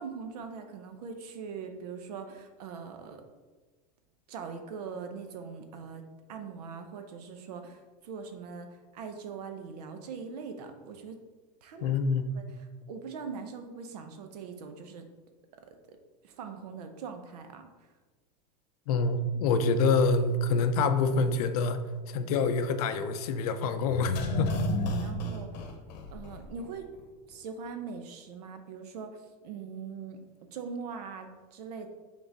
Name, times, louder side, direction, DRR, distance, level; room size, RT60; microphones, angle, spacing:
voice 1, 0.0-3.2 4.3-6.0 6.3-8.7 8.9-11.2 11.6-12.0 12.3-12.4 12.9-15.0 16.2-17.6 25.0-25.5 26.1-26.9 27.3-29.2 29.4-31.9, right 5 dB, 65° right, 6 dB, 0.8 m, -41 dB
voice 2, 11.8-12.3 18.9-21.8 22.1-24.5, left 4 dB, 60° left, 9 dB, 0.6 m, -26 dB
sound 1, 23.8-26.7 27.0-27.1, left 1 dB, 80° left, 1.0 m, -32 dB
6.1 x 3.9 x 4.0 m, 1.3 s
supercardioid pair, 175°, 21 cm